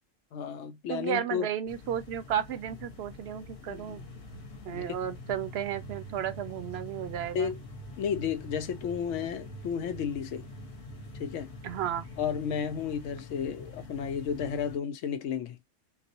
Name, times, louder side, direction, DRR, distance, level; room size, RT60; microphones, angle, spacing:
voice 1, 0.3-1.5 3.7-4.1 4.7-4.8 7.3-7.6 8.0-10.5 11.2-11.5 12.2-15.6, left 7 dB, 80° left, 0.9 m, -32 dB
voice 2, 0.9-4.0 4.7-7.5 11.6-12.1, right 10 dB, 65° right, 0.7 m, -33 dB
sound 1, 1.7-14.8, left 1 dB, 55° left, 1.1 m, -45 dB
3.9 x 2.1 x 2.8 m
omnidirectional pair, 1.3 m